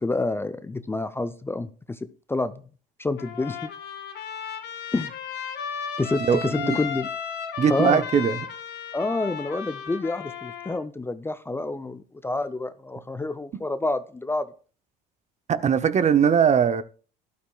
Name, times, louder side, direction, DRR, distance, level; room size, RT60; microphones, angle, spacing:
voice 1, 0.0-2.6 3.0-3.7 4.9-5.1 6.0-7.1 7.7-8.0 8.9-14.5, left 2 dB, 10° left, 0.5 m, -28 dB
Trumpet, 3.2-10.8, left 7 dB, 55° left, 2.2 m, -34 dB
voice 2, 6.3-6.8 7.6-8.4 15.5-16.8, right 7 dB, 35° right, 0.7 m, -20 dB
12.5 x 12.0 x 2.3 m
supercardioid pair, 90°, 21 cm